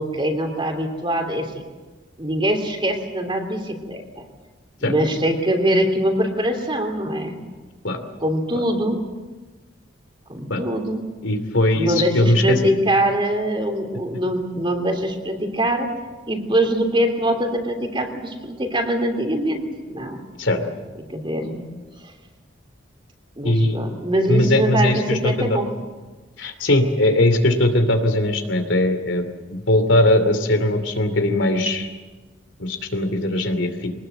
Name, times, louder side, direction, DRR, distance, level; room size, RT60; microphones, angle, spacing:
voice 1, 0.0-1.5 2.2-4.2 4.8-7.4 8.2-9.0 10.3-11.0 11.7-15.9 16.3-20.2 21.1-21.7 23.4-25.7, equal, 25° right, 4 dB, 3.1 m, -23 dB
voice 2, 11.2-12.6 20.4-20.6 23.4-23.8 24.3-25.6 26.4-31.9 32.6-33.9, left 1 dB, 80° left, 7 dB, 2.8 m, -20 dB
24.0 x 19.5 x 7.9 m, 1.3 s
head